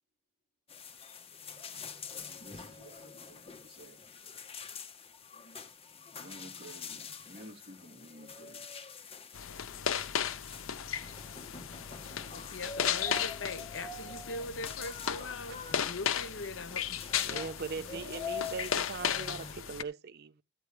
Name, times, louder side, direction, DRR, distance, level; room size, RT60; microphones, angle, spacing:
sound 1, 0.7-19.5, left 5 dB, 30° left, 1.0 m, -45 dB
voice 1, 2.1-4.1 6.1-8.7 17.7-18.1, equal, 30° right, 3.6 m, -52 dB
sound 2, 9.3-19.8, left 8 dB, 90° left, 0.6 m, -35 dB
voice 2, 12.2-17.0, left 2 dB, 65° left, 1.0 m, -41 dB
voice 3, 17.2-20.4, right 4 dB, 55° right, 0.5 m, -40 dB
13.0 x 9.2 x 3.1 m
head